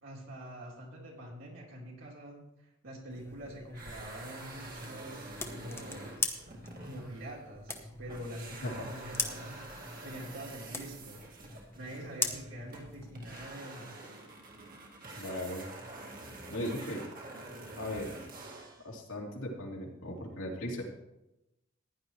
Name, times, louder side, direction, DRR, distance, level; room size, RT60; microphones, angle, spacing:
voice 1, 0.0-6.1 6.8-11.2 11.7-14.0, right 1 dB, 70° right, -3 dB, 3.8 m, -45 dB
sound 1, 3.1-13.5, left 3 dB, 10° left, 0.9 m, -41 dB
sound 2, 3.7-7.8 8.1-18.9, right 2 dB, 45° right, 2.1 m, -47 dB
voice 2, 8.6-9.0 15.1-15.7 16.5-17.0 17.8-18.2 18.8-20.8, left 1 dB, 85° left, -2 dB, 2.8 m, -38 dB
15.5 x 10.5 x 3.2 m, 0.91 s
head